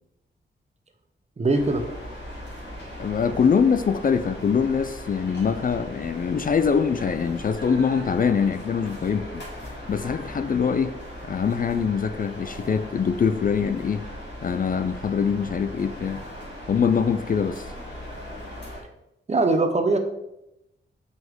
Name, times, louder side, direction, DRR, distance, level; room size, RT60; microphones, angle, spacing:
voice 1, 1.4-1.9 19.3-20.0, right 2 dB, 35° right, 6 dB, 0.8 m, -21 dB
sound 1, 1.5-18.8, equal, 65° left, 2.6 m, -39 dB
voice 2, 3.0-10.9 11.2-14.0 14.4-16.2 16.7-17.7, left 6 dB, 45° left, 11 dB, 0.4 m, -23 dB
6.0 x 5.4 x 3.6 m, 0.87 s
wide cardioid pair, 115°, 20 cm